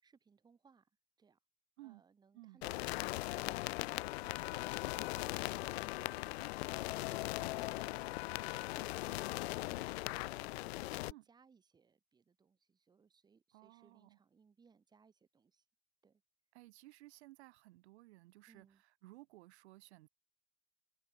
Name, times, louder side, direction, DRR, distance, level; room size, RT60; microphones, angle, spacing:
voice 1, 0.0-0.9 1.2-1.4 1.8-8.1 8.7-15.6 16.0-16.2 18.5-18.8, right 5 dB, 10° right, 2.9 m, -67 dB
sound 1, 2.6-11.1, left 19 dB, 55° left, 0.5 m, -39 dB
voice 2, 13.5-14.2 16.5-20.1, right 19 dB, 55° right, 2.6 m, -58 dB
supercardioid pair, 165°, 39 cm